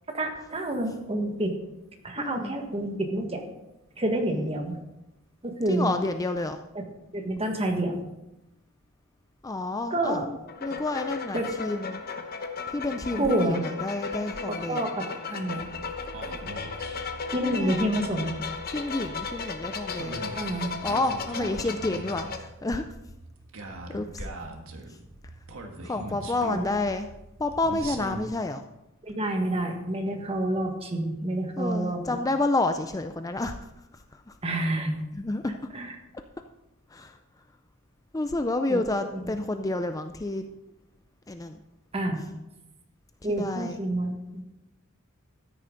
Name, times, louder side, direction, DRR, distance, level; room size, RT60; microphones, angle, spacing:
voice 1, 0.1-1.5 2.0-3.4 4.0-4.8 5.4-5.9 6.7-6.8 7.1-8.0 9.9-10.3 11.3-11.5 13.2-13.6 14.5-15.6 17.3-18.3 20.3-20.7 26.5-26.7 29.0-32.1 34.4-34.9 35.7-35.9 38.7-38.8 39.1-39.2 41.9-42.2 43.2-44.4, right 1 dB, 30° right, 3 dB, 1.6 m, -28 dB
voice 2, 2.2-2.6 4.2-4.5 5.7-6.6 9.4-12.0 12.7-14.9 17.4-17.9 18.7-20.3 20.8-22.9 23.9-24.3 24.9-25.0 25.8-27.1 27.4-28.6 31.6-33.5 33.9-34.4 35.1-35.5 36.9-37.2 38.1-40.4 41.3-41.6 43.3-43.8, left 2 dB, 15° left, 8 dB, 0.4 m, -30 dB
sound 1, 10.5-22.4, left 5 dB, 45° left, 1.1 m, -35 dB
sound 2, 15.6-28.3, right 2 dB, 80° right, 1.5 m, -42 dB
13.5 x 9.9 x 3.9 m, 0.92 s
head